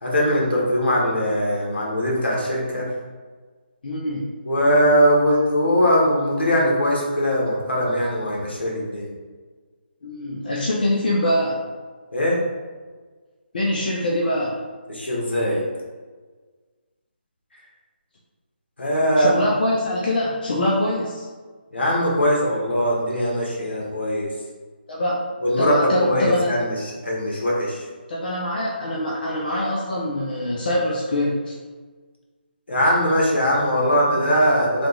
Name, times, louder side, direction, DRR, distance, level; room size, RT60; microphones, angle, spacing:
voice 1, 0.0-2.9 4.5-9.1 12.1-12.4 14.9-15.6 18.8-19.4 21.7-24.3 25.4-26.7 27.0-27.8 32.7-34.9, equal, 80° left, -3 dB, 1.4 m, -21 dB
voice 2, 3.8-4.3 10.0-11.6 13.5-14.6 19.2-21.3 24.9-25.3 25.6-26.5 28.1-31.6, left 1 dB, 55° left, -4 dB, 0.7 m, -24 dB
3.5 x 2.9 x 3.9 m, 1.4 s
figure-of-eight pair, 160°, 6 cm